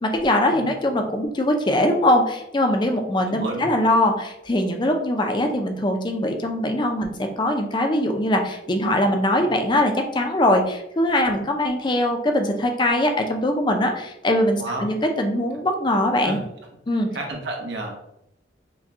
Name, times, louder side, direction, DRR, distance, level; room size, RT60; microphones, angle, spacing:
voice 1, 0.0-16.4 16.9-17.1, left 1 dB, 25° left, 4 dB, 0.5 m, -22 dB
voice 2, 3.3-3.7 14.6-14.8 16.2-16.4 17.1-18.1, right 2 dB, 70° right, 0 dB, 0.9 m, -30 dB
5.7 x 2.3 x 2.7 m, 0.81 s
head